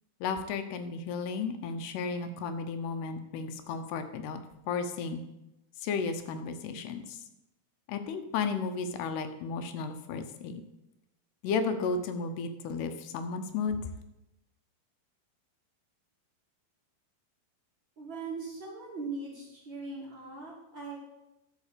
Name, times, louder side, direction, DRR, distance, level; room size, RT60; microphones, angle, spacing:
voice 1, 0.2-4.4 4.7-5.2 5.8-7.2 7.9-10.6 11.4-13.9, left 5 dB, 85° left, 8 dB, 2.9 m, -33 dB
voice 2, 18.0-21.0, right 4 dB, 40° right, -5 dB, 2.2 m, -40 dB
12.5 x 5.4 x 6.6 m, 0.92 s
omnidirectional pair, 4.6 m